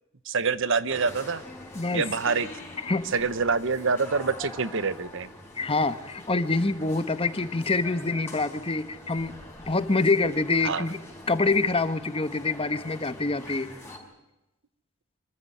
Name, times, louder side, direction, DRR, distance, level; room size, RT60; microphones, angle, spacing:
voice 1, 0.2-1.4 1.9-2.5 3.1-5.3 10.6-10.8, right 4 dB, 65° right, 14 dB, 1.0 m, -26 dB
sound 1, 0.9-14.0, left 1 dB, 10° left, 5.1 m, -44 dB
voice 2, 1.7-2.0 2.8-3.1 5.5-9.3 9.7-11.0 11.3-13.7, left 3 dB, 25° left, 11 dB, 1.1 m, -26 dB
25.0 x 15.0 x 9.9 m, 0.92 s
head